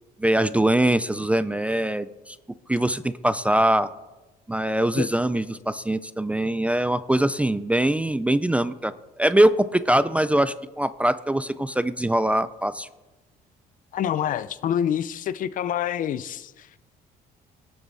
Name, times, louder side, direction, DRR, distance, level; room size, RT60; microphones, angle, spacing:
voice 1, 0.2-2.4 2.7-3.9 4.5-8.9 9.2-12.9, right 1 dB, 10° right, 0.4 m, -22 dB
voice 2, 13.9-16.8, left 9 dB, 50° left, 0.5 m, -27 dB
18.0 x 7.1 x 4.1 m
cardioid pair, 110°, 17 cm